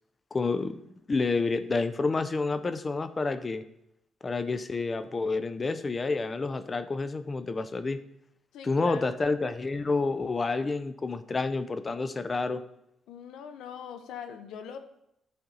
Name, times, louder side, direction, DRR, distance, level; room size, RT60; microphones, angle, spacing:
voice 1, 0.3-0.8 1.1-3.6 4.2-8.0 8.6-12.6, left 3 dB, 30° left, 12 dB, 0.6 m, -29 dB
voice 2, 8.5-9.0 13.1-14.8, left 7 dB, 80° left, 8 dB, 0.8 m, -41 dB
10.5 x 4.3 x 4.0 m, 0.79 s
cardioid pair, 90°, 0 cm